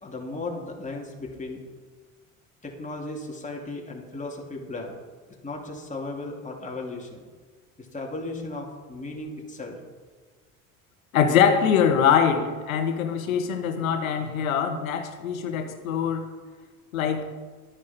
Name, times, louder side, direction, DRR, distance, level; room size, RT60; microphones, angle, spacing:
voice 1, 0.0-1.6 2.6-4.9 5.4-7.2 7.8-9.8, left 2 dB, 20° left, -1 dB, 2.7 m, -36 dB
voice 2, 11.1-16.3 16.9-17.2, left 7 dB, 85° left, 7 dB, 1.2 m, -23 dB
12.0 x 9.5 x 4.3 m, 1.5 s
hypercardioid pair, 70°, 40 cm